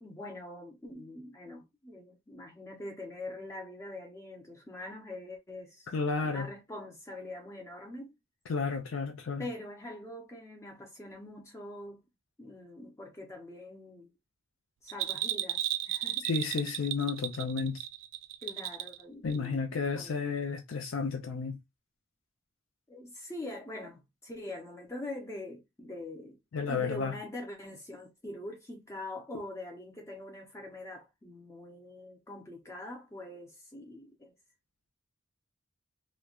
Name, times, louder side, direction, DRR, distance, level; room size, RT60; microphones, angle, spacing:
voice 1, 0.0-5.9 6.2-8.1 9.4-12.0 12.4-14.1 14.8-16.3 18.4-20.2 22.9-26.4 26.7-34.3, left 1 dB, 15° left, 0.5 m, -44 dB
voice 2, 5.9-6.5 8.5-9.5 16.2-17.8 19.2-21.6 26.5-27.1, left 5 dB, 80° left, 0.5 m, -32 dB
Bell, 14.9-19.0 19.3-19.4, right 13 dB, 80° right, 0.4 m, -34 dB
3.0 x 2.2 x 2.2 m
head